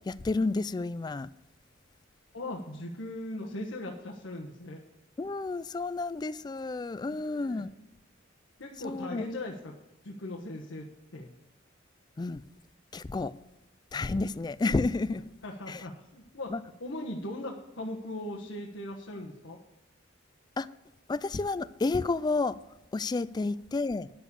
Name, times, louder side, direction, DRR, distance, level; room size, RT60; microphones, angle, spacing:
voice 1, 0.1-1.3 5.2-7.7 8.8-9.3 12.2-12.4 12.9-13.3 13.9-15.3 15.7-15.8 16.5-16.6 20.6-20.7 21.1-22.6 22.9-24.1, left 3 dB, 20° left, 0.3 m, -30 dB
voice 2, 2.3-4.8 7.1-7.6 8.6-9.7 10.0-10.9 11.1-11.3 15.4-16.5 16.8-19.6, left 1 dB, 90° left, 1.3 m, -39 dB
10.5 x 7.1 x 7.0 m
head